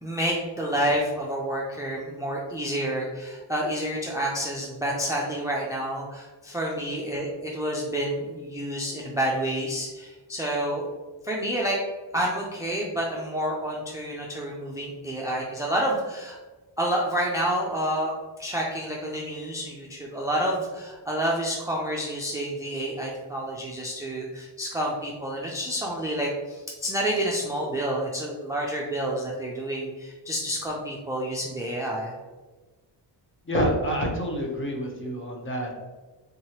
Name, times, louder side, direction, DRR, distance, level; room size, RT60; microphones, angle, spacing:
voice 1, 0.0-10.8 11.2-11.8 12.1-16.4 16.8-18.1 18.4-32.1, right 1 dB, 10° right, -2 dB, 0.4 m, -29 dB
voice 2, 33.5-35.8, equal, 25° left, 0 dB, 0.8 m, -27 dB
3.7 x 3.0 x 2.9 m, 1.3 s
cardioid pair, 100°, 45 cm